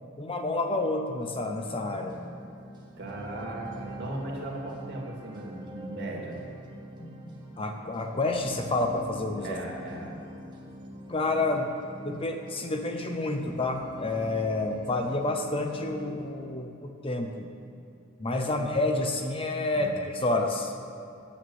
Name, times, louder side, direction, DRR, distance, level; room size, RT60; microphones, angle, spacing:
voice 1, 0.2-2.2 7.0-9.6 11.1-11.7 12.0-17.5 18.2-20.7, left 2 dB, 25° left, 4 dB, 0.7 m, -29 dB
sound 1, 1.2-16.3, equal, 20° right, 1.4 m, -44 dB
voice 2, 3.0-6.4 9.4-10.2 18.3-18.6 19.7-20.0, right 1 dB, 55° right, -1 dB, 2.2 m, -37 dB
10.0 x 8.2 x 7.9 m, 2.5 s
head